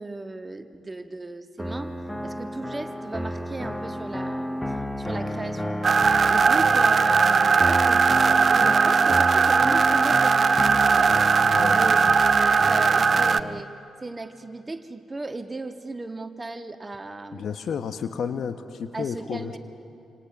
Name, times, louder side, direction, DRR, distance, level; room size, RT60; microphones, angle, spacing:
voice 1, 0.0-2.0 2.2-4.6 5.0-5.8 6.3-11.2 11.7-13.7 14.0-17.5 18.9-19.6, right 2 dB, 25° right, 8 dB, 1.5 m, -36 dB
sound 1, 1.6-13.6, equal, 10° left, 1.2 m, -31 dB
sound 2, 5.8-13.4, right 5 dB, 45° right, 0.6 m, -19 dB
voice 2, 11.4-11.8 17.3-19.6, left 7 dB, 55° left, 10 dB, 1.2 m, -31 dB
27.0 x 26.5 x 6.1 m, 2.8 s
figure-of-eight pair, 40°, 0 cm